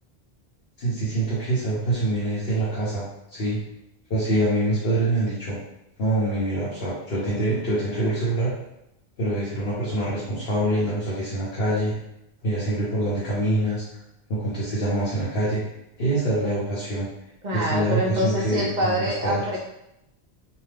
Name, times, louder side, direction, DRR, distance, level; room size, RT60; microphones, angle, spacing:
voice 1, 0.8-3.6 4.1-5.6 6.0-8.5 9.2-11.9 12.4-13.8 14.3-15.6 16.0-17.1 17.5-19.6, right 1 dB, 65° left, -9 dB, 1.0 m, -25 dB
voice 2, 17.4-19.6, equal, 50° right, -2 dB, 0.6 m, -25 dB
2.7 x 2.2 x 3.3 m, 0.85 s
omnidirectional pair, 1.1 m